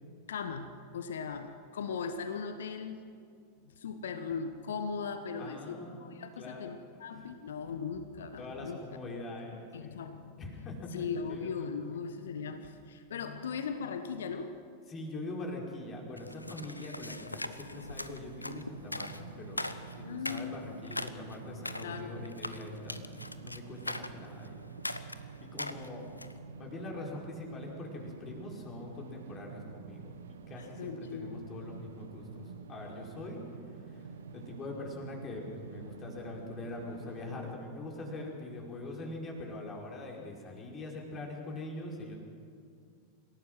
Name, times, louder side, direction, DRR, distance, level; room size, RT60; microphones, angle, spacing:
voice 1, 0.3-3.0 3.6-8.8 9.7-14.5 20.0-20.7 21.8-22.2 30.6-31.5, left 5 dB, 65° left, 9 dB, 1.2 m, -39 dB
voice 2, 5.4-6.8 8.2-10.0 10.4-11.7 14.9-24.6 25.1-26.1 26.6-33.4 33.8-42.2, left 2 dB, 25° left, -1 dB, 5.0 m, -43 dB
sound 1, 16.2-26.4, left 2 dB, 85° left, 0.9 m, -41 dB
sound 2, 18.2-37.5, right 5 dB, 65° right, 1.1 m, -48 dB
27.0 x 17.0 x 6.3 m, 2.4 s
figure-of-eight pair, 90°, 0 cm